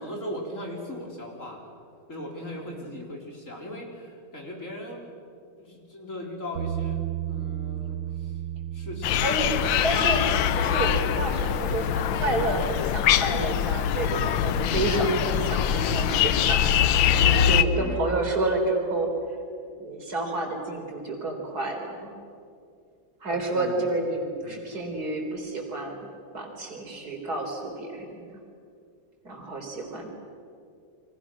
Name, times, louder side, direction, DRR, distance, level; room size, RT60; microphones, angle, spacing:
voice 1, 0.0-1.6 2.1-5.0 5.6-7.0 7.3-8.3 8.7-9.8 17.7-18.1 23.5-23.8 24.4-24.6, left 1 dB, 40° left, 0 dB, 4.4 m, -38 dB
voice 2, 2.5-2.9 9.2-9.5 9.8-16.6 17.2-19.1 19.8-22.1 23.2-26.1 26.3-28.2 29.2-30.1, right 2 dB, 55° right, 2 dB, 4.5 m, -30 dB
Bass guitar, 6.6-12.8, right 11 dB, 85° right, 1.6 m, -35 dB
sound 1, 9.0-17.6, left 9 dB, 90° left, 1.5 m, -23 dB
29.0 x 24.5 x 6.2 m, 2.4 s
omnidirectional pair, 2.0 m